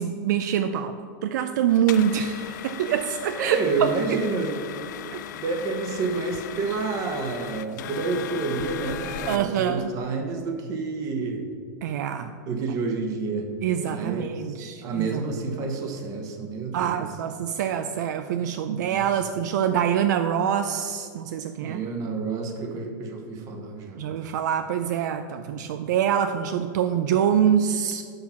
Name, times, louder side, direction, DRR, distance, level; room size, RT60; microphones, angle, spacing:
voice 1, 0.0-4.2 5.1-5.2 9.3-9.9 11.8-12.3 13.6-15.2 16.7-21.8 24.0-28.0, right 9 dB, 65° right, 9 dB, 0.4 m, -25 dB
sound 1, 1.7-9.4, left 11 dB, 65° left, 0.4 m, -37 dB
voice 2, 3.3-4.6 5.3-11.4 12.5-13.5 13.8-17.1 18.7-19.1 21.6-24.0 25.5-25.6, right 4 dB, 30° right, 4 dB, 1.0 m, -29 dB
6.6 x 5.7 x 5.7 m, 2.2 s
supercardioid pair, 150°, 10 cm